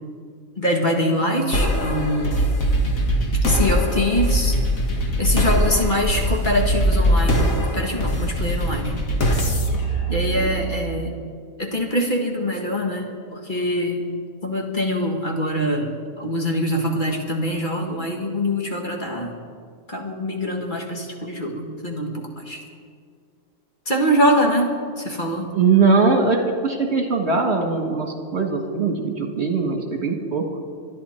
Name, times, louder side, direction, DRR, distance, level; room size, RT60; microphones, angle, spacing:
voice 1, 0.6-2.4 3.4-4.6 5.2-7.5 7.7-8.9 10.1-11.2 11.6-14.1 14.4-19.4 19.9-22.6 23.9-25.5, equal, 35° left, 0 dB, 1.8 m, -24 dB
sound 1, 1.5-11.0, equal, 80° left, 2.1 m, -21 dB
voice 2, 25.5-30.5, right 4 dB, 55° right, 2 dB, 1.8 m, -20 dB
25.0 x 10.5 x 4.4 m, 2.1 s
omnidirectional pair, 1.4 m